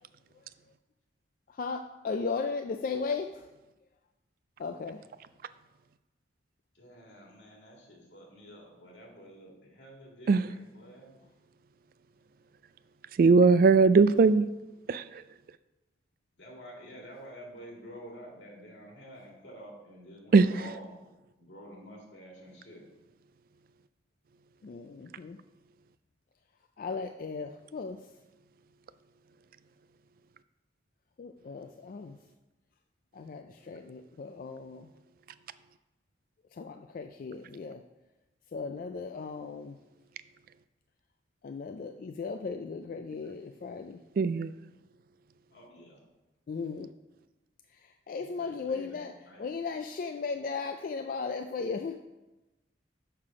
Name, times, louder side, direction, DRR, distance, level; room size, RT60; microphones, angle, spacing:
voice 1, 1.5-3.5 4.6-5.1 24.6-25.4 26.8-28.1 31.2-32.2 33.1-34.9 36.5-37.8 38.5-39.8 41.4-44.0 46.5-46.9 47.7-49.1 49.4-52.0, left 4 dB, 50° left, 6 dB, 0.3 m, -36 dB
voice 2, 6.7-11.1 16.4-21.0 21.3-22.8 45.5-46.0 48.2-49.4, equal, 85° left, -1 dB, 2.2 m, -49 dB
voice 3, 13.2-14.5 14.9-15.2 20.3-20.5 44.2-44.5, right 4 dB, 55° right, 15 dB, 0.3 m, -20 dB
6.7 x 5.7 x 4.8 m, 1.1 s
head